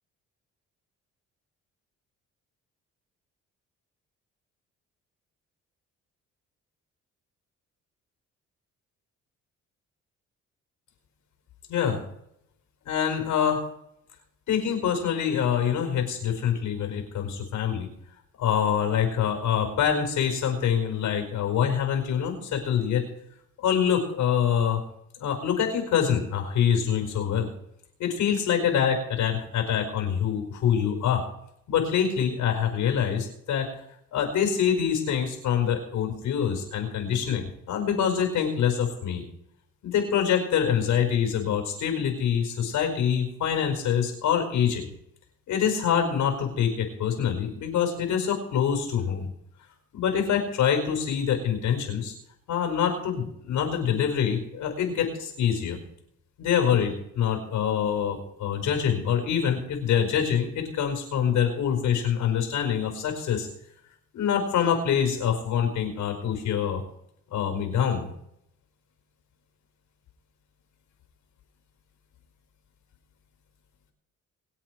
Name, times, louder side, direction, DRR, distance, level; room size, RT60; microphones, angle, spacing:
voice 1, 11.7-12.0 12.8-13.6 14.5-17.9 18.4-23.0 23.6-24.8 25.2-27.5 28.0-31.2 31.7-33.7 34.1-39.2 39.8-44.8 45.5-49.3 49.9-52.1 52.5-55.8 56.4-63.5 64.1-66.8 67.3-68.1, left 8 dB, 85° left, 4 dB, 4.9 m, -25 dB
24.0 x 8.4 x 4.7 m, 0.76 s
cardioid pair, 90°, 30 cm